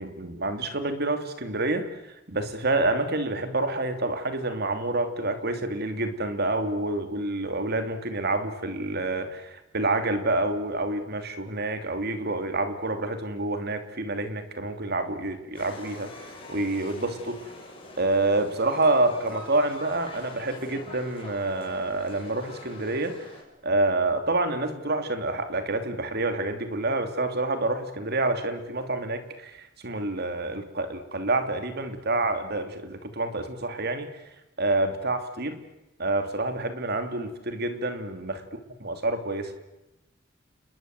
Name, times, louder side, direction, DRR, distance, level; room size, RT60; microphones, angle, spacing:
voice 1, 0.0-17.4 18.0-23.3 23.6-34.2 34.6-35.6 36.0-38.4 38.8-39.5, right 2 dB, 55° right, 8 dB, 2.9 m, -28 dB
sound 1, 15.5-23.4, left 2 dB, 30° left, 6.8 m, -45 dB
29.0 x 21.5 x 7.9 m, 0.94 s
head